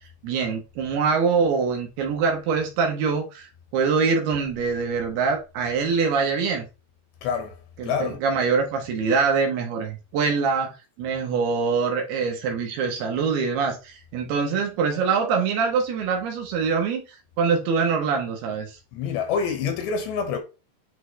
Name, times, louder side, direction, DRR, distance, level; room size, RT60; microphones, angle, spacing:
voice 1, 0.2-6.6 7.8-10.7 11.0-17.0 17.4-18.8, right 5 dB, 70° right, 2.9 m, -24 dB
voice 2, 7.2-7.5 7.8-8.2 18.9-20.4, left 6 dB, 85° left, 3.6 m, -26 dB
9.2 x 3.6 x 3.2 m
omnidirectional pair, 5.0 m